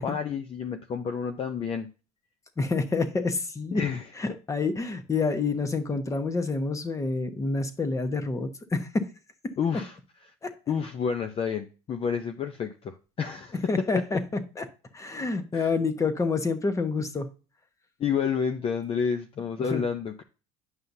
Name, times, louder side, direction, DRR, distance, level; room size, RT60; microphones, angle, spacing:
voice 1, 0.0-1.9 3.7-4.1 9.6-10.0 10.7-14.0 15.5-15.7 18.0-20.2, left 6 dB, 40° left, 6 dB, 0.7 m, -30 dB
voice 2, 2.6-3.8 4.2-9.0 10.4-10.5 13.7-14.2 14.6-14.7 14.9-17.3 19.6-19.8, left 3 dB, 20° left, 8 dB, 1.1 m, -28 dB
9.6 x 5.6 x 2.7 m, 0.33 s
supercardioid pair, 105°, 15 cm